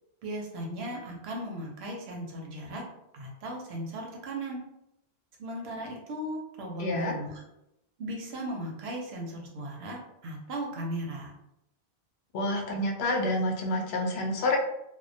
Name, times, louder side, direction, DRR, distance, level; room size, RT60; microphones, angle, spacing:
voice 1, 0.2-2.8 3.1-4.6 5.4-7.4 8.0-11.3, right 1 dB, 90° right, 0 dB, 0.9 m, -37 dB
voice 2, 6.8-7.2 12.3-14.6, left 1 dB, 85° left, 2 dB, 0.8 m, -28 dB
2.2 x 2.1 x 2.6 m, 0.86 s
omnidirectional pair, 1.1 m